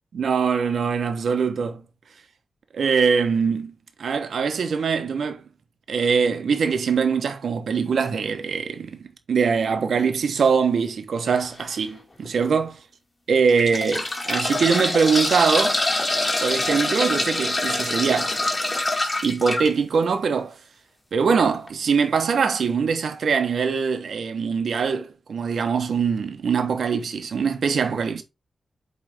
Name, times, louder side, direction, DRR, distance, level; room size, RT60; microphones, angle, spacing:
voice 1, 0.1-1.8 2.7-3.7 4.0-5.4 5.9-9.0 9.3-12.8 13.3-15.8 16.4-18.4 19.2-20.5 21.1-28.2, right 5 dB, 85° right, 1.2 m, -22 dB
sound 1, 11.4-11.6 12.2-12.3 13.3-19.7 21.3-21.4 21.7-21.8, left 2 dB, 30° left, 2.2 m, -25 dB
8.4 x 3.4 x 3.5 m
cardioid pair, 75°, 0 cm